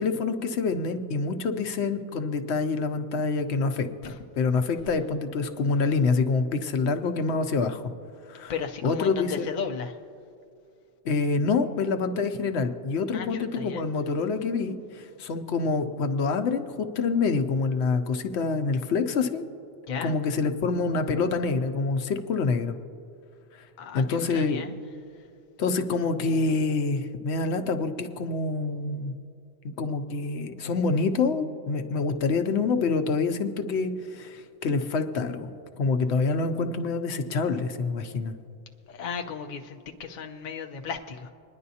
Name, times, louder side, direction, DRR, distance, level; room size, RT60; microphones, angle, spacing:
voice 1, 0.0-7.8 8.3-8.5 8.8-9.5 11.0-19.5 20.0-22.8 23.5-23.7 23.9-24.6 25.6-29.1 29.6-35.5 35.8-38.4, left 4 dB, 80° left, 8 dB, 0.9 m, -26 dB
voice 2, 8.5-10.0 13.1-13.8 19.9-20.1 23.8-24.7 25.1-25.3 38.9-41.3, left 6 dB, 50° left, 4 dB, 0.7 m, -35 dB
26.0 x 10.5 x 2.8 m, 2.5 s
omnidirectional pair, 1.1 m